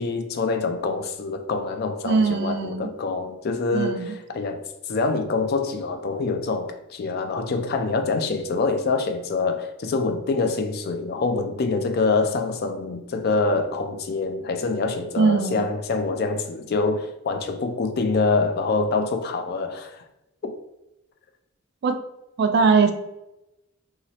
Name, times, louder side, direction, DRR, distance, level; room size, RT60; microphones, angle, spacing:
voice 1, 0.0-4.6 4.9-20.0 20.4-20.5, left 3 dB, 50° left, 0.4 m, -25 dB
voice 2, 2.0-2.9 3.7-4.2 15.2-15.7 21.8-22.0 22.4-22.9, right 4 dB, 55° right, 0.3 m, -21 dB
3.0 x 2.4 x 2.8 m
head